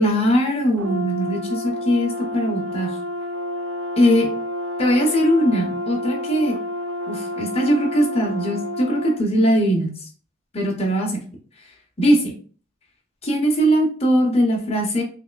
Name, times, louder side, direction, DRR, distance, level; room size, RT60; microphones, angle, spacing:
voice 1, 0.0-2.9 4.0-4.3 4.8-6.6 7.1-9.9 10.5-11.2 12.0-12.3 13.2-15.0, equal, 30° left, 0 dB, 0.8 m, -20 dB
Brass instrument, 0.8-9.2, left 1 dB, 65° right, 0.3 m, -29 dB
3.4 x 3.2 x 2.2 m, 0.41 s
head